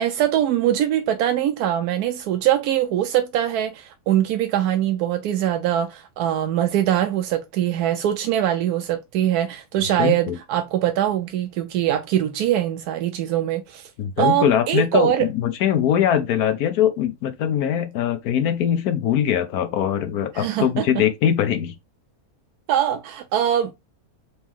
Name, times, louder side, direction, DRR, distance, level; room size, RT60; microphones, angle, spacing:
voice 1, 0.0-13.9 14.2-15.3 20.3-21.0 22.7-23.7, right 11 dB, 90° right, 1.1 m, -22 dB
voice 2, 10.0-10.4 14.0-21.7, left 9 dB, 80° left, 1.2 m, -22 dB
4.1 x 3.1 x 3.6 m
omnidirectional pair, 1.6 m